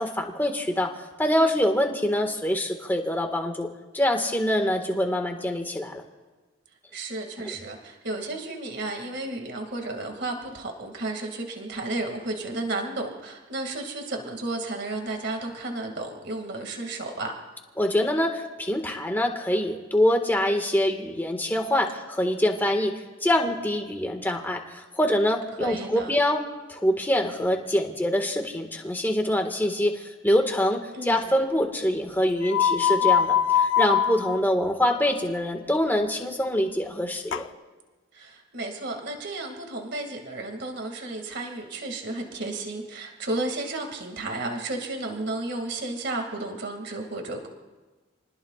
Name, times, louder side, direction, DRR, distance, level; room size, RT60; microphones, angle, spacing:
voice 1, 0.0-3.7 3.9-6.0 7.4-7.6 17.8-26.4 26.7-37.5, left 1 dB, 10° left, 3 dB, 1.7 m, -25 dB
voice 2, 6.9-17.3 25.6-26.1 30.9-31.4 38.1-47.5, right 2 dB, 55° right, 3 dB, 2.3 m, -33 dB
sound 1, 32.4-34.4 37.3-37.4, left 9 dB, 75° left, 0.7 m, -22 dB
29.0 x 20.0 x 2.5 m, 1.3 s
head